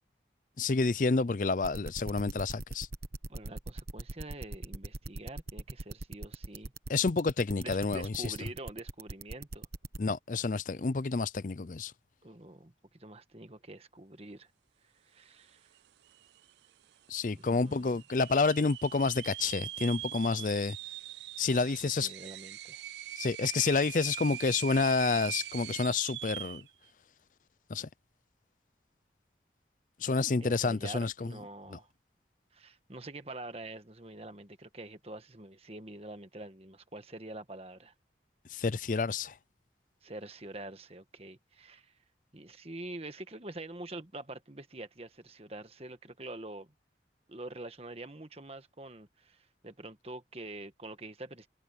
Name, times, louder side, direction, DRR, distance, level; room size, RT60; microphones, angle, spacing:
voice 1, 0.6-2.9 6.9-8.3 10.0-11.9 17.1-20.8 21.4-22.1 23.2-26.6 27.7-27.9 30.0-31.3 38.5-39.3, left 4 dB, 45° left, 0.5 m, -29 dB
sound 1, 1.6-10.0, right 2 dB, 60° right, 1.3 m, -39 dB
voice 2, 3.3-6.7 7.5-9.7 12.2-12.7 13.0-14.5 14.8-15.7 17.3-18.0 21.5-22.8 30.4-31.9 32.5-37.9 40.0-41.9 42.3-46.7 47.3-51.5, right 2 dB, 35° right, 1.5 m, -46 dB
sound 2, 15.8-15.9 16.1-16.7 17.2-17.3 18.0-26.7, right 13 dB, 80° right, 0.4 m, -42 dB
head